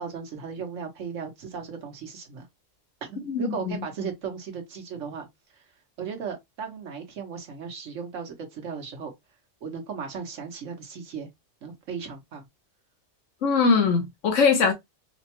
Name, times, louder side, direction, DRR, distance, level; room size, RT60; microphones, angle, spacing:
voice 1, 0.0-2.5 3.0-5.3 6.0-9.1 9.6-11.3 11.6-12.5, right 6 dB, 90° right, 1.4 m, -36 dB
voice 2, 3.3-3.8 13.4-14.7, left 5 dB, 85° left, 1.3 m, -22 dB
4.9 x 2.1 x 2.9 m
omnidirectional pair, 1.2 m